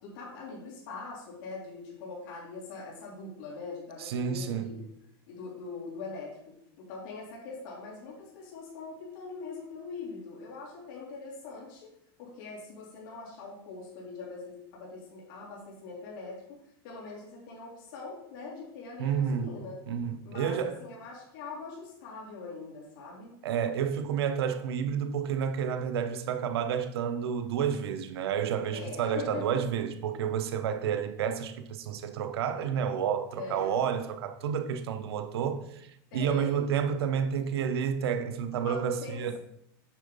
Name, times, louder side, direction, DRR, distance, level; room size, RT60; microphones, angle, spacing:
voice 1, 0.0-4.9 5.3-11.9 12.2-19.8 20.2-23.3 28.7-29.6 33.4-33.7 36.1-36.7 38.6-39.4, left 4 dB, 55° left, 3.4 m, -42 dB
voice 2, 4.0-4.7 19.0-19.6 19.9-20.8 23.4-39.4, right 7 dB, 85° right, 0.9 m, -30 dB
9.1 x 4.0 x 5.4 m
supercardioid pair, 170°, 13 cm